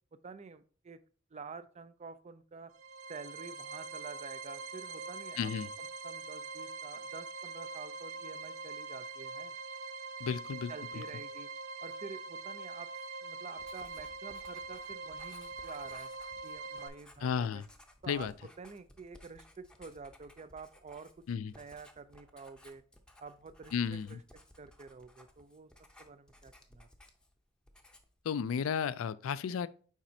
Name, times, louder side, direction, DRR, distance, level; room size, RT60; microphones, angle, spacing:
voice 1, 0.1-1.0 1.3-2.7 3.1-5.5 5.8-9.5 10.7-11.5 11.8-12.9 13.2-16.1 16.4-17.6 18.0-21.3 21.5-22.8 23.2-24.2 24.6-25.7 26.0-26.9, right 4 dB, 35° right, 0.4 m, -49 dB
sound 1, 2.7-16.9, right 4 dB, 70° right, 0.7 m, -43 dB
voice 2, 5.4-5.7 10.2-10.7 17.2-17.7 18.1-18.3 21.3-21.5 23.7-24.2 28.2-29.7, left 7 dB, 80° left, 0.4 m, -33 dB
Writing, 13.6-27.4 27.7-28.2, left 1 dB, 5° left, 0.7 m, -59 dB
7.3 x 5.1 x 2.7 m
head